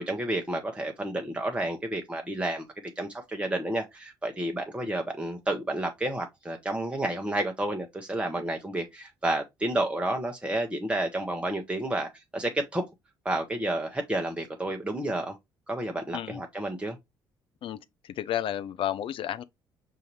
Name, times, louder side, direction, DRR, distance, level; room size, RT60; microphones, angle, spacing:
voice 1, 0.0-2.7 3.0-12.8 13.2-15.4 15.7-17.0, right 1 dB, 10° right, 0.8 m, -30 dB
voice 2, 18.0-19.4, left 11 dB, 50° left, 0.5 m, -31 dB
5.6 x 2.6 x 2.9 m
hypercardioid pair, 50°, 11 cm